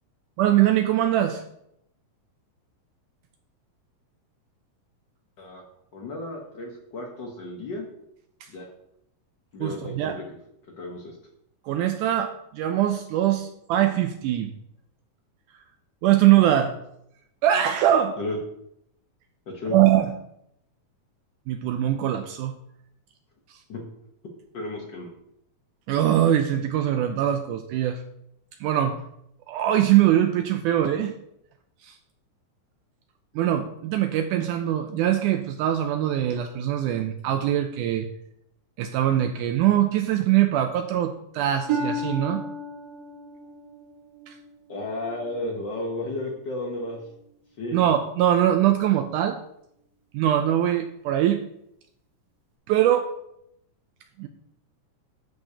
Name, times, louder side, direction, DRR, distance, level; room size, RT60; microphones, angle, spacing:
voice 1, 0.4-1.4 8.4-8.5 9.6-10.2 11.7-14.5 16.0-16.7 17.4-18.2 19.7-20.1 21.5-22.5 25.9-28.0 28.6-29.0 29.5-31.1 31.8-32.0 33.4-38.1 38.8-42.4 44.3-44.4 47.7-49.4 50.1-51.4 52.7-53.1 54.2-54.3, right 11 dB, 80° right, 7 dB, 1.9 m, -22 dB
voice 2, 5.9-7.9 8.5-8.7 9.5-10.2 10.8-11.2 18.2-18.4 19.5-19.7 23.7-23.8 24.5-25.1 44.7-47.0 47.6-47.8, left 2 dB, 90° left, -1 dB, 0.9 m, -33 dB
Harp, 41.7-45.4 46.0-46.4 47.0-47.1, right 2 dB, 60° right, 2.3 m, -33 dB
11.0 x 6.8 x 2.8 m, 0.77 s
omnidirectional pair, 3.8 m